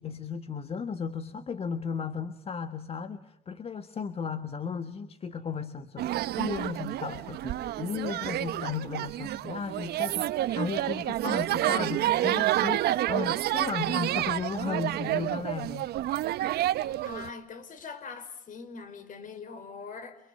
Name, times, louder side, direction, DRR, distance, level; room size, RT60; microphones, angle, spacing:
voice 1, 0.0-6.1 6.4-15.9, left 6 dB, 35° left, 1.5 m, -35 dB
sound 1, 6.0-17.3, right 14 dB, 75° right, 1.1 m, -29 dB
voice 2, 17.1-20.2, left 5 dB, 50° left, 5.3 m, -42 dB
29.0 x 24.5 x 7.8 m
cardioid pair, 110°, 17 cm